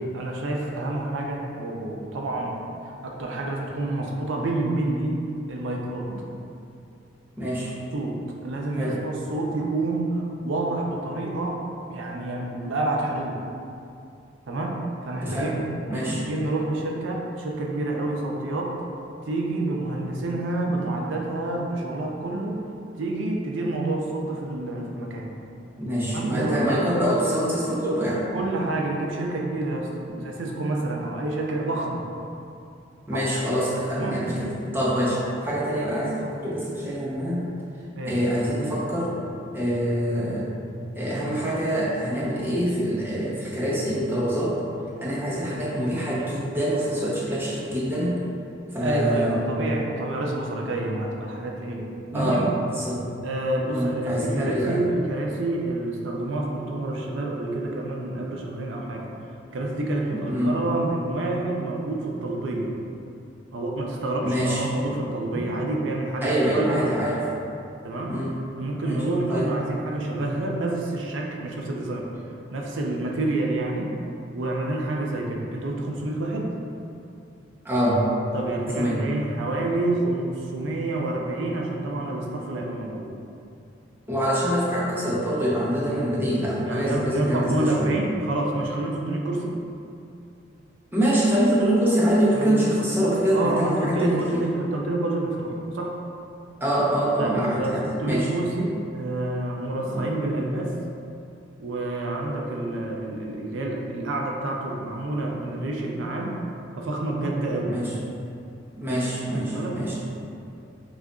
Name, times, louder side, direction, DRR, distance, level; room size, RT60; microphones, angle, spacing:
voice 1, 0.1-2.6 2.8-5.2 5.5-6.1 7.9-8.2 8.4-13.4 14.5-18.7 19.2-22.6 23.0-25.3 26.1-26.8 28.3-29.9 30.2-32.0 33.1-33.5 34.0-34.2 38.0-38.2 48.8-52.5 53.2-59.1 59.5-62.7 63.5-67.0 67.8-68.1 68.6-72.1 72.5-74.0 74.3-76.5 78.3-83.0 86.6-89.6 92.3-95.9 97.2-100.7 101.6-106.4 106.8-107.7 109.3-109.8, right 2 dB, 80° right, -1 dB, 0.5 m, -28 dB
voice 2, 7.4-7.7 8.8-9.0 15.2-15.5 15.9-16.2 25.8-28.2 30.1-30.2 33.1-37.4 38.1-39.1 39.5-40.5 40.9-44.6 45.0-48.2 48.7-49.4 52.1-52.4 52.7-53.0 53.7-54.8 60.1-60.5 64.2-64.6 65.3-65.5 66.2-67.2 68.1-68.3 68.8-69.0 69.3-69.5 77.6-78.0 78.7-79.1 84.1-87.9 90.9-94.5 96.6-98.3 99.9-100.1 107.7-107.9 108.8-109.9, equal, 10° right, -7 dB, 0.8 m, -25 dB
6.2 x 2.5 x 2.4 m, 2.6 s
head